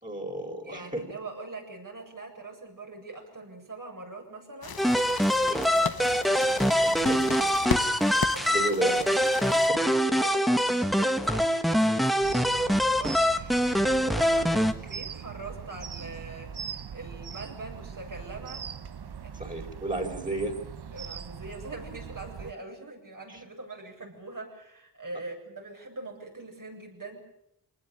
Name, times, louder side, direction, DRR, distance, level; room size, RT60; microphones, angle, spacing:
voice 1, 0.0-1.0 5.5-5.6 6.8-7.2 8.1-9.0 9.4-9.8 16.0-16.1 19.3-20.6 23.3-23.4, right 2 dB, 20° right, 0 dB, 4.6 m, -33 dB
voice 2, 0.6-4.8 5.2-6.2 8.3-8.7 9.6-18.7 19.2-19.6 20.9-27.2, right 2 dB, 55° right, 1 dB, 7.8 m, -43 dB
sound 1, 4.6-9.7, left 6 dB, 70° left, 1.3 m, -36 dB
sound 2, 4.8-14.7, equal, ahead, 1.6 m, -24 dB
sound 3, 12.2-22.5, right 7 dB, 80° right, 1.1 m, -41 dB
26.0 x 19.5 x 8.6 m, 0.79 s
wide cardioid pair, 90°, 38 cm